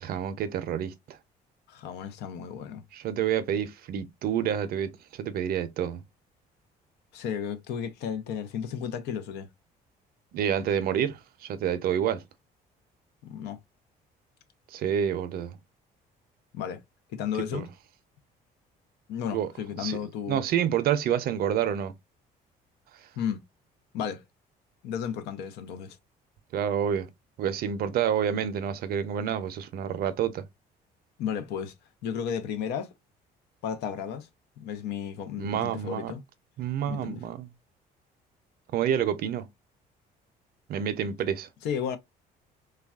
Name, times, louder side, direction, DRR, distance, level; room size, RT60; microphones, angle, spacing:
voice 1, 0.0-1.2 2.9-6.0 10.3-12.2 14.7-15.6 17.5-17.7 19.3-19.5 19.8-20.0 20.3-21.9 26.5-27.1 27.4-30.4 35.4-36.1 36.6-37.5 38.7-39.5 40.7-41.5, right 9 dB, 65° right, 0.5 m, -28 dB
voice 2, 1.7-2.8 7.1-9.5 13.2-13.6 16.5-16.8 17.1-17.7 19.1-20.4 23.2-23.4 23.9-24.2 24.8-26.0 31.2-31.7 32.0-32.9 33.6-34.3 34.6-36.2 36.8-37.2 41.6-42.0, left 8 dB, 85° left, 0.6 m, -33 dB
3.2 x 2.3 x 2.3 m
cardioid pair, 110°, 17 cm